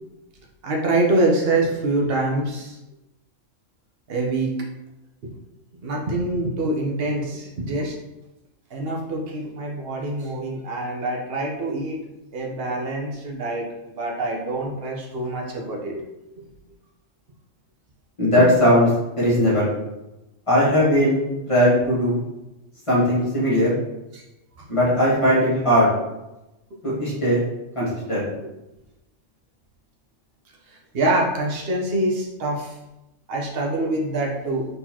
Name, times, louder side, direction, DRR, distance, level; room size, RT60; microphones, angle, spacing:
voice 1, 0.6-2.8 4.1-4.5 5.2-5.3 5.8-8.0 8.7-12.0 12.3-16.1 18.4-18.5 24.1-24.2 24.6-24.7 30.7-32.8 33.3-34.7, right 2 dB, 55° right, -1 dB, 1.1 m, -25 dB
voice 2, 18.2-18.9 19.2-19.7 20.5-21.2 21.5-22.2 22.9-23.7 24.7-25.9 26.8-27.4 27.8-28.2, equal, 25° left, -9 dB, 1.8 m, -18 dB
4.4 x 3.9 x 2.9 m, 0.97 s
omnidirectional pair, 1.3 m